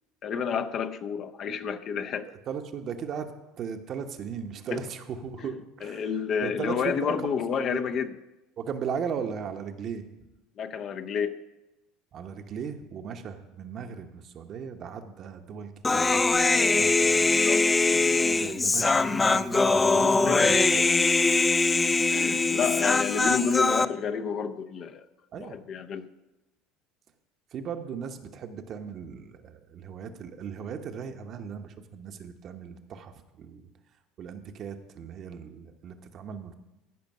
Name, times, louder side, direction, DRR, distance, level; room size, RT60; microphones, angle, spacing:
voice 1, 0.2-2.3 4.7-4.8 5.4-5.5 5.8-8.1 10.6-11.4 17.2-17.7 20.2-20.5 22.1-25.1 25.4-26.1, left 6 dB, 50° left, 8 dB, 0.7 m, -30 dB
voice 2, 2.5-3.3 3.6-6.1 6.4-7.3 7.6-7.8 8.6-10.0 12.1-17.4 18.3-20.9 25.3-25.6 27.5-33.7 34.2-36.5, right 7 dB, 50° right, 6 dB, 0.9 m, -37 dB
Human voice, 15.8-23.9, left 3 dB, 20° left, 0.4 m, -22 dB
14.0 x 5.2 x 5.4 m, 1.0 s
supercardioid pair, 90°, 0 cm